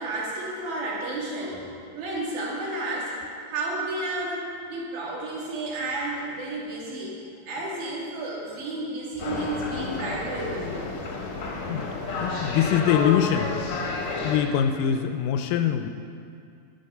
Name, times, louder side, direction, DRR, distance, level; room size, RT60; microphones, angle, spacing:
voice 1, 0.0-1.7 1.9-3.1 3.5-7.2 7.5-10.7, right 2 dB, 80° right, -5 dB, 3.9 m, -31 dB
sound 1, 9.2-14.4, left 3 dB, 55° left, 1.6 m, -31 dB
voice 2, 12.2-13.5 14.2-15.9, left 9 dB, 80° left, 7 dB, 2.1 m, -23 dB
12.0 x 7.9 x 5.7 m, 2.3 s
omnidirectional pair, 4.1 m